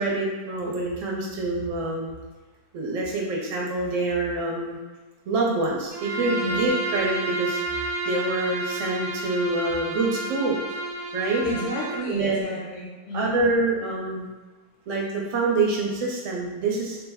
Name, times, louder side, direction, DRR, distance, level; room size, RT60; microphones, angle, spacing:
voice 1, 0.0-2.1 2.7-4.8 5.3-10.6 11.1-11.4 12.1-12.4 13.1-14.3 14.9-17.0, right 2 dB, 60° right, -2 dB, 1.0 m, -26 dB
Bowed string instrument, 5.9-12.1, right 2 dB, 75° right, 0.6 m, -30 dB
voice 2, 11.4-13.4, left 1 dB, 55° left, -4 dB, 0.8 m, -31 dB
3.2 x 2.0 x 3.4 m, 1.3 s
omnidirectional pair, 1.7 m